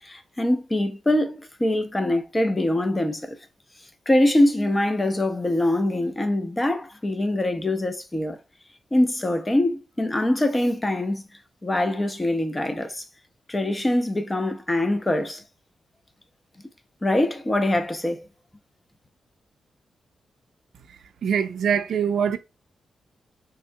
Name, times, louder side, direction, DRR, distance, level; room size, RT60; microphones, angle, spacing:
voice 1, 0.0-3.4 4.1-8.4 8.9-11.2 11.6-13.0 13.5-15.4 17.0-18.3, left 1 dB, 20° left, 0.5 m, -23 dB
voice 2, 21.2-22.4, right 7 dB, 80° right, 0.3 m, -23 dB
3.6 x 2.2 x 2.6 m
cardioid pair, 90°, 0 cm